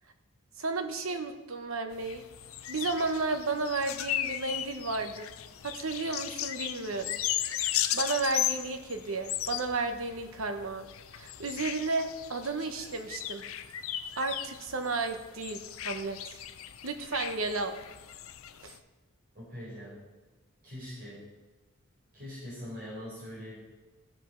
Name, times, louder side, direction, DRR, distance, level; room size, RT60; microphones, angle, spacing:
voice 1, 0.6-2.2 2.7-5.3 5.6-7.2 7.6-10.9 11.1-13.4 14.2-15.6 15.8-16.2 16.8-17.7 18.6-18.8, right 3 dB, 75° right, 6 dB, 1.1 m, -33 dB
sound 1, 1.9-18.8, left 11 dB, 75° left, 0.5 m, -36 dB
voice 2, 19.3-20.0 20.6-21.2 22.1-23.6, equal, 45° right, -7 dB, 4.3 m, -42 dB
15.0 x 5.5 x 5.8 m, 1.2 s
head